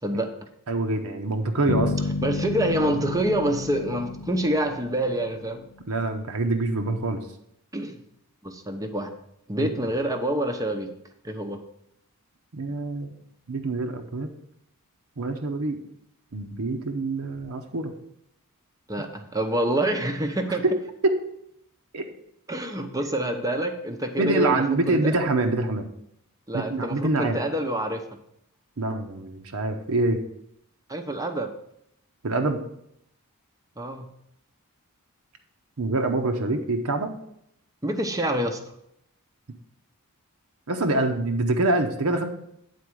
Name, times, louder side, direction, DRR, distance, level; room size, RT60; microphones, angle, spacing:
voice 1, 0.7-1.9 5.9-7.2 9.6-9.7 12.5-13.1 13.5-14.3 15.2-15.8 16.3-17.9 20.6-20.8 21.0-21.2 21.9-22.1 24.2-25.9 26.5-27.4 28.8-30.2 32.2-32.6 35.8-37.1 40.7-42.3, right 2 dB, 70° right, 5 dB, 0.8 m, -25 dB
sound 1, 1.7-5.7, left 3 dB, 85° left, 0.5 m, -31 dB
voice 2, 2.2-5.6 7.7-8.0 8.4-9.2 9.5-10.9 11.2-11.6 18.9-20.6 22.5-25.1 26.5-28.0 30.9-31.5 33.8-34.1 37.8-38.6, right 1 dB, 15° right, 6 dB, 0.7 m, -27 dB
8.4 x 4.2 x 6.3 m, 0.75 s
head